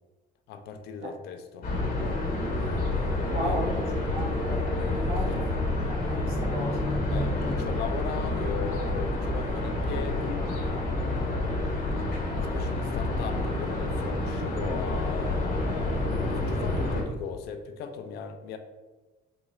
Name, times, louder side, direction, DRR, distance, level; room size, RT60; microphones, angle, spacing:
voice 1, 0.5-1.7 3.3-3.7 5.2-5.5 7.1-11.1 12.3-18.6, left 7 dB, 75° left, 7 dB, 0.4 m, -38 dB
sound 1, 1.6-17.0, left 2 dB, 55° left, 0.8 m, -28 dB
voice 2, 3.3-3.7 4.1-4.6 5.0-6.9, right 1 dB, 65° right, -2 dB, 1.1 m, -35 dB
3.8 x 2.3 x 3.1 m, 1.2 s
cardioid pair, 110°, 17 cm